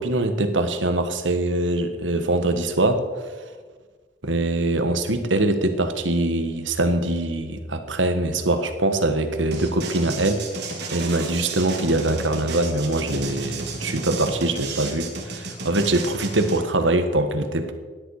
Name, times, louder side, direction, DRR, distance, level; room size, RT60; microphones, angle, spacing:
voice 1, 0.0-3.0 4.2-10.6 10.9-17.7, right 2 dB, 85° right, 8 dB, 1.5 m, -23 dB
sound 1, 9.5-16.6, right 3 dB, 65° right, 3.0 m, -33 dB
17.0 x 11.0 x 4.9 m, 1.5 s
head